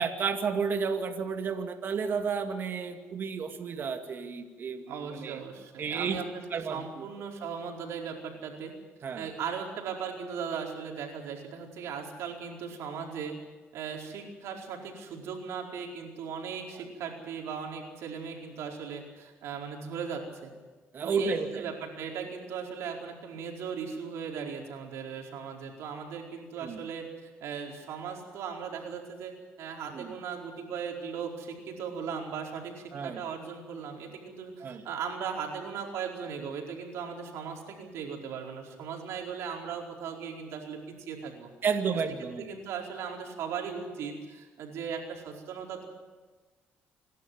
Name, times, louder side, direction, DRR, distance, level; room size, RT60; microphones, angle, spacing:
voice 1, 0.0-5.4 5.8-6.2 6.5-7.0 9.0-9.3 20.9-21.7 26.6-26.8 29.9-30.1 32.9-33.2 34.6-34.8 41.6-42.5, right 5 dB, 50° right, 5 dB, 2.3 m, -32 dB
voice 2, 4.9-8.7 9.1-13.3 13.7-20.5 21.0-41.5 42.4-45.9, right 6 dB, 80° right, 1 dB, 4.6 m, -38 dB
27.0 x 12.0 x 9.5 m, 1.3 s
cardioid pair, 100°, 5 cm